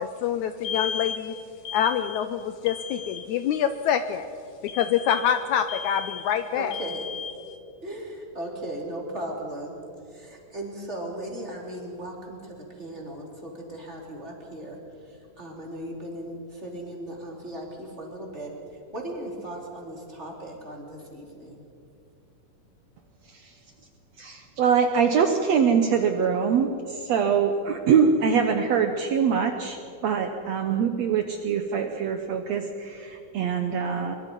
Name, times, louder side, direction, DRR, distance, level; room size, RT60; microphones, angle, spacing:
voice 1, 0.0-1.3 1.6-4.3 4.6-7.3, left 9 dB, 75° left, 10 dB, 1.8 m, -26 dB
voice 2, 6.5-7.1 7.8-9.8 10.1-14.8 15.1-18.5 18.9-21.6, right 1 dB, 20° right, -1 dB, 3.5 m, -37 dB
voice 3, 24.2-34.2, right 6 dB, 65° right, 5 dB, 1.9 m, -24 dB
23.5 x 23.0 x 5.4 m, 2.6 s
omnidirectional pair, 3.9 m